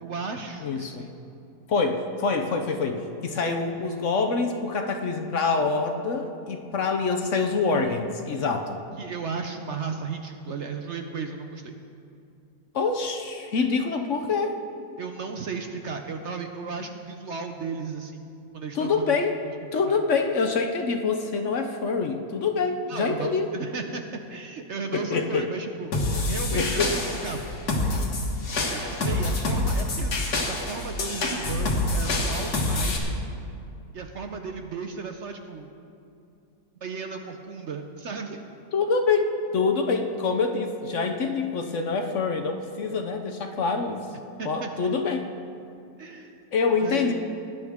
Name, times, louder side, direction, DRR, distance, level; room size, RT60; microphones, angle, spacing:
voice 1, 0.0-1.1 8.9-11.8 15.0-19.1 19.6-20.0 22.9-24.0 24.3-27.4 28.7-30.1 30.4-33.2 33.9-35.7 36.8-38.4 44.4-44.7 46.0-46.3 46.8-47.1, right 5 dB, 55° right, 5 dB, 0.9 m, -35 dB
voice 2, 0.6-1.1 1.7-8.8 12.7-14.6 18.7-19.4 19.7-23.5 24.9-25.5 26.5-26.9 38.7-44.1 44.4-45.3 46.5-47.1, left 4 dB, 60° left, 5 dB, 1.0 m, -26 dB
sound 1, 25.9-33.0, left 2 dB, 80° left, 2.0 m, -26 dB
19.5 x 10.5 x 3.6 m, 2.6 s
omnidirectional pair, 1.7 m